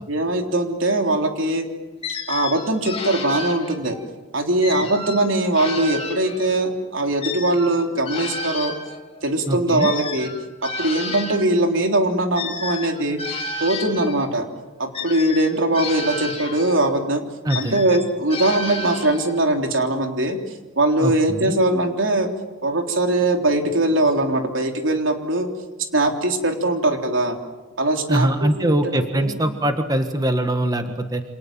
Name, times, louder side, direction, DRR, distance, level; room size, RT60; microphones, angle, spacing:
voice 1, 0.1-1.6 2.3-4.0 4.3-8.7 9.2-10.3 10.6-13.2 13.6-14.5 14.8-17.2 17.6-20.4 20.8-22.3 22.6-25.5 25.9-27.4 27.8-28.7 29.2-29.4, right 1 dB, 75° right, 4 dB, 3.5 m, -21 dB
sound 1, 2.0-4.1 4.6-6.7 7.2-11.5 12.3-14.3 14.9-16.9 17.5-19.5, left 3 dB, 30° left, 3.2 m, -32 dB
voice 2, 9.5-9.9 17.4-17.8 21.0-21.6 28.1-31.2, right 1 dB, 20° right, 7 dB, 1.5 m, -22 dB
28.5 x 27.0 x 7.5 m, 1.2 s
head